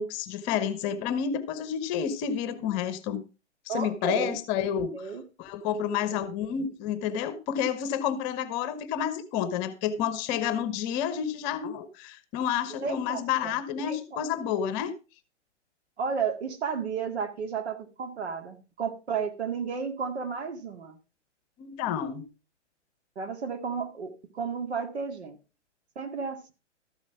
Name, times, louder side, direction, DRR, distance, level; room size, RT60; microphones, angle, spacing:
voice 1, 0.0-3.2 3.7-5.1 5.4-14.9 21.6-22.3, left 8 dB, 30° left, 1.1 m, -30 dB
voice 2, 3.7-4.4 4.9-5.2 6.1-6.3 12.8-13.6 13.8-14.2 16.0-21.0 23.2-25.4 26.0-26.5, right 6 dB, 65° right, 2.1 m, -33 dB
13.5 x 7.5 x 4.6 m
figure-of-eight pair, 125°, 36 cm